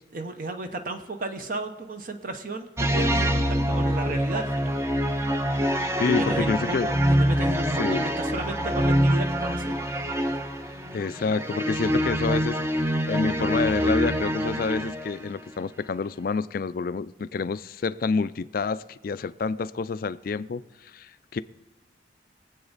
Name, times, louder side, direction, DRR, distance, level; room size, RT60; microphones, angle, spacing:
voice 1, 0.1-4.8 6.1-9.9, right 2 dB, 45° right, 0.8 m, -34 dB
sound 1, 2.8-15.3, equal, 15° right, 0.6 m, -25 dB
voice 2, 6.0-6.9 7.8-8.1 10.9-20.6 20.9-21.4, left 4 dB, 50° left, 0.4 m, -28 dB
22.5 x 8.0 x 4.0 m
head